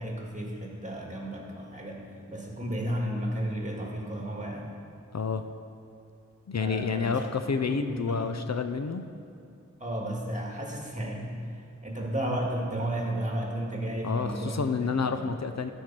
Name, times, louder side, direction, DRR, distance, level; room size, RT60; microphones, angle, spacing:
voice 1, 0.0-2.0 2.3-4.7 6.6-7.3 7.7-8.3 9.8-11.3 11.8-14.6 14.8-15.3, right 1 dB, 25° right, -1 dB, 2.0 m, -33 dB
voice 2, 5.1-5.5 6.5-9.1 14.0-15.7, left 5 dB, 60° left, 8 dB, 0.5 m, -29 dB
13.0 x 4.5 x 6.1 m, 2.5 s
wide cardioid pair, 45°, 30 cm